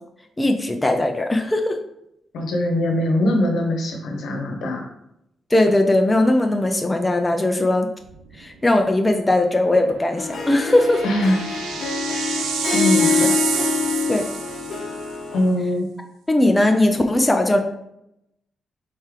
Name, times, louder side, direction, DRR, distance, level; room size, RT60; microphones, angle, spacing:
voice 1, 0.4-1.8 5.5-7.9 8.4-11.0 13.1-13.3 14.1-14.2 16.3-17.6, left 1 dB, 20° left, 4 dB, 0.6 m, -19 dB
voice 2, 2.3-4.8 11.0-11.4 12.7-13.5 15.3-15.9, left 1 dB, 80° left, 2 dB, 1.0 m, -22 dB
sound 1, 8.1-8.4 8.8-8.9 10.3-15.0, right 7 dB, 90° right, 0.5 m, -28 dB
Harp, 10.2-15.5, left 5 dB, 55° left, 0.9 m, -25 dB
4.3 x 3.2 x 3.7 m, 0.81 s
cardioid pair, 65°, 0 cm